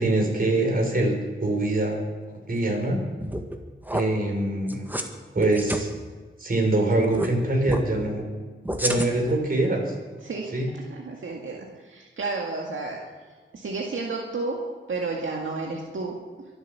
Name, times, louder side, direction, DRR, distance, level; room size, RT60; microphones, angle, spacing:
voice 1, 0.0-2.0 2.5-3.0 3.9-4.9 5.3-5.9 6.4-8.2 8.8-9.9 10.5-10.7, right 2 dB, 45° right, 1 dB, 4.5 m, -24 dB
sound 1, 3.2-3.6 3.9-4.0 4.7-5.1 5.4-5.8 7.1-7.3 7.7-7.8 8.7-9.3, right 1 dB, 10° right, 1.7 m, -29 dB
voice 2, 10.2-13.0 13.5-14.6 14.9-16.1, right 3 dB, 80° right, -1 dB, 2.0 m, -32 dB
23.5 x 8.3 x 6.9 m, 1.4 s
wide cardioid pair, 80°, 20 cm